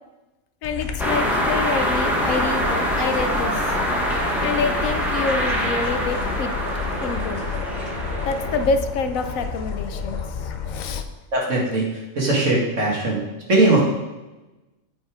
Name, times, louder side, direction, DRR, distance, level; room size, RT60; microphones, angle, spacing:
voice 1, 0.6-3.8 4.4-6.5 7.0-7.5 8.2-11.0, left 4 dB, 90° left, 8 dB, 1.2 m, -27 dB
sound 1, 0.6-11.0, left 6 dB, 50° left, 0.6 m, -31 dB
sound 2, 1.0-8.6, equal, ahead, 1.3 m, -25 dB
sound 3, 2.1-8.7, right 2 dB, 40° right, 1.1 m, -33 dB
voice 2, 11.3-13.2 13.5-13.8, right 2 dB, 70° right, -3 dB, 2.3 m, -20 dB
8.7 x 5.3 x 4.9 m, 1.1 s
omnidirectional pair, 1.4 m